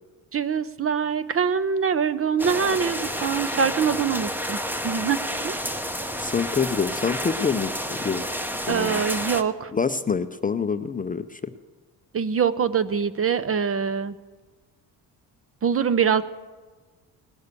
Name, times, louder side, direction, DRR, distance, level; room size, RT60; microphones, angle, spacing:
voice 1, 0.3-5.6 8.7-9.7 12.1-14.2 15.6-16.2, right 6 dB, 35° right, 15 dB, 0.6 m, -24 dB
sound 1, 2.4-9.4, equal, 5° right, 0.8 m, -30 dB
voice 2, 6.2-8.2 8.7-9.0 9.7-11.4, left 5 dB, 20° left, 9 dB, 0.4 m, -26 dB
18.5 x 6.7 x 8.1 m, 1.4 s
cardioid pair, 105°, 41 cm